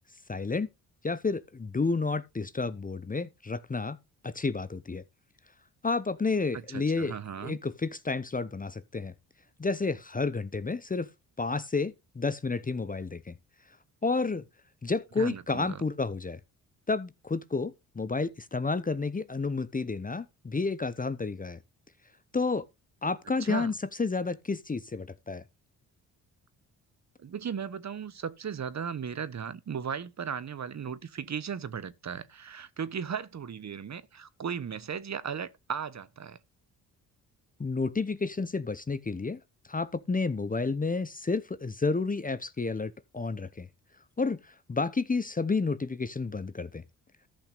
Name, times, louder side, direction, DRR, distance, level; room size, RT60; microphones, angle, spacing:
voice 1, 0.3-0.7 1.0-4.0 4.2-5.0 5.8-7.1 7.4-9.1 9.6-11.1 11.4-13.4 14.0-14.4 14.8-16.4 16.9-21.6 22.3-22.6 23.0-23.7 24.0-25.4 37.6-39.4 39.7-43.7 44.2-46.8, left 4 dB, 20° left, 0.9 m, -30 dB
voice 2, 6.5-7.6 15.2-15.8 23.4-23.7 27.2-36.4, right 7 dB, 45° right, 1.2 m, -36 dB
14.0 x 5.8 x 4.0 m
supercardioid pair, 55°, 40 cm